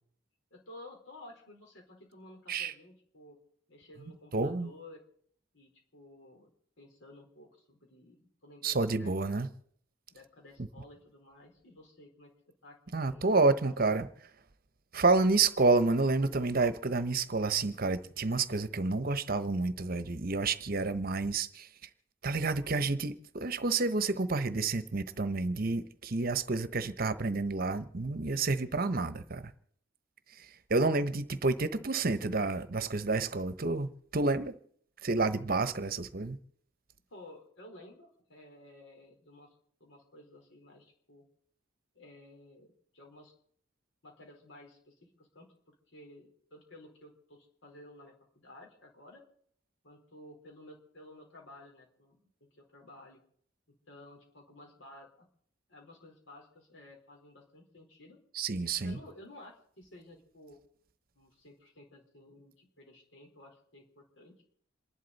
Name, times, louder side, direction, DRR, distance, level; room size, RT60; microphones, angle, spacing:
voice 1, 0.5-3.4 3.7-5.0 5.5-6.5 6.8-9.4 10.1-13.8 37.1-39.5 39.8-41.2 41.9-43.3 44.0-49.2 49.8-52.3 52.6-53.2 53.7-55.3 55.7-58.2 58.8-60.6 61.1-64.4, left 1 dB, 80° left, 4.3 m, -54 dB
voice 2, 4.3-4.7 8.6-9.5 12.9-14.1 14.9-21.7 22.2-29.5 30.4-34.5 35.0-36.4 58.3-59.0, right 3 dB, 50° right, 1.0 m, -29 dB
28.0 x 11.5 x 4.1 m
head